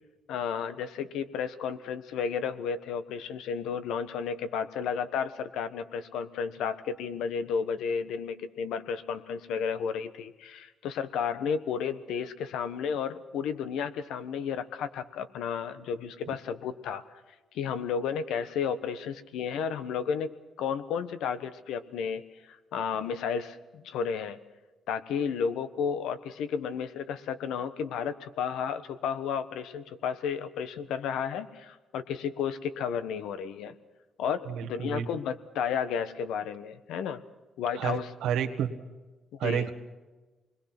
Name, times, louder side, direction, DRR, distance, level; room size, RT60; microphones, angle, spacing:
voice 1, 0.3-17.0 17.5-24.4 24.9-33.7 34.2-37.2 37.6-38.1 39.3-39.7, left 7 dB, 85° left, 11 dB, 1.2 m, -32 dB
voice 2, 34.5-35.1 37.8-38.7 39.4-39.7, right 8 dB, 85° right, 4 dB, 1.7 m, -30 dB
26.5 x 21.5 x 6.0 m, 1.2 s
cardioid pair, 90°, 0 cm